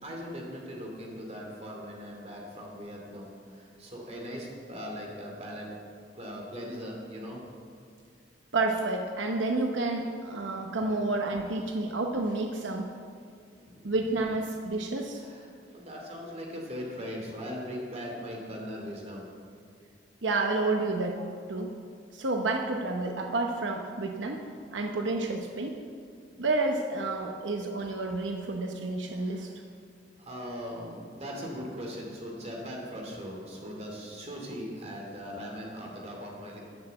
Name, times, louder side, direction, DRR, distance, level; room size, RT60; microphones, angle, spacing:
voice 1, 0.0-5.7 6.1-7.4 10.8-10.9 13.6-13.9 15.1-19.3 24.5-24.8 27.2-27.3 29.1-29.7 30.2-36.6, equal, 35° right, -1 dB, 2.5 m, -40 dB
voice 2, 8.5-12.9 13.8-15.2 20.2-21.7 22.1-24.5 24.7-25.8 26.4-29.5, right 2 dB, 85° right, 3 dB, 0.9 m, -30 dB
11.0 x 6.8 x 7.9 m, 2.3 s
head